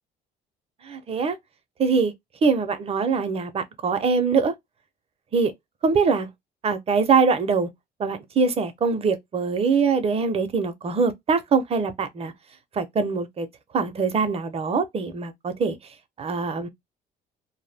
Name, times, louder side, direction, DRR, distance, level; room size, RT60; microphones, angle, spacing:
voice 1, 0.8-1.4 1.8-2.1 2.4-4.5 5.3-5.5 5.8-6.3 6.6-7.7 8.0-12.3 12.7-13.5 13.7-15.8 16.2-16.7, right 5 dB, 35° right, 0.6 m, -23 dB
2.2 x 2.1 x 3.3 m
cardioid pair, 110°, 17 cm